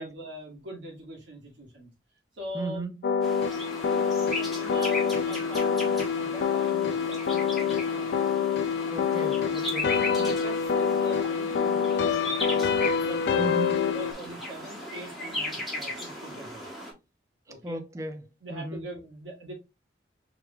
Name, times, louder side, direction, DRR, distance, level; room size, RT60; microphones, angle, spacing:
voice 1, 0.0-1.9 2.3-2.8 4.3-8.3 9.1-9.5 9.8-12.7 13.0-13.4 13.9-16.6 17.5-17.8 18.4-19.5, right 1 dB, 80° right, 1.8 m, -42 dB
voice 2, 2.5-2.9 8.9-9.9 13.4-13.9 17.6-18.9, right 2 dB, 15° right, 0.4 m, -36 dB
sound 1, 3.0-14.1, left 6 dB, 65° left, 0.3 m, -26 dB
sound 2, 3.2-16.9, left 1 dB, ahead, 1.1 m, -37 dB
4.8 x 3.2 x 2.3 m
head